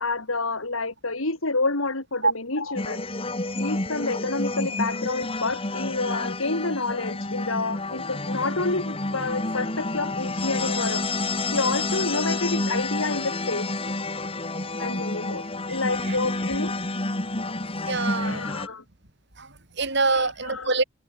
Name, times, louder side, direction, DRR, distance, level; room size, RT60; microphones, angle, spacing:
voice 1, 0.0-3.0 3.6-11.1 11.5-13.8 14.8-16.7 18.2-18.8 20.1-20.8, left 3 dB, 85° left, 3.5 m, -29 dB
sound 1, 2.8-18.7, left 2 dB, 25° left, 2.6 m, -29 dB
voice 2, 17.8-18.4 19.4-20.8, right 3 dB, 55° right, 7.6 m, -25 dB
open air
head